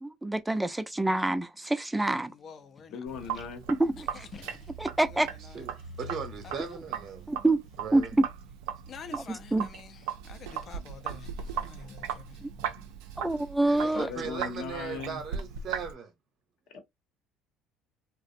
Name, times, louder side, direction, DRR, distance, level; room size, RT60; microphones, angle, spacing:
voice 1, 0.0-2.3 3.8-4.3 4.8-5.3 7.3-7.6 7.9-8.0 9.1-9.7 12.4-12.5 13.2-14.1, right 2 dB, 10° right, 0.4 m, -27 dB
voice 2, 2.4-3.0 4.1-4.7 5.1-5.3 6.4-6.5 8.9-12.4, left 6 dB, 45° left, 0.5 m, -48 dB
voice 3, 2.9-3.6 13.9-15.2 16.7-16.8, left 6 dB, 65° left, 0.8 m, -38 dB
Sink (filling or washing), 3.1-15.9, right 7 dB, 80° right, 0.4 m, -38 dB
voice 4, 6.0-7.3 7.8-8.1 13.6-16.1, right 6 dB, 55° right, 0.7 m, -38 dB
2.5 x 2.0 x 2.5 m
supercardioid pair, 75°, 0 cm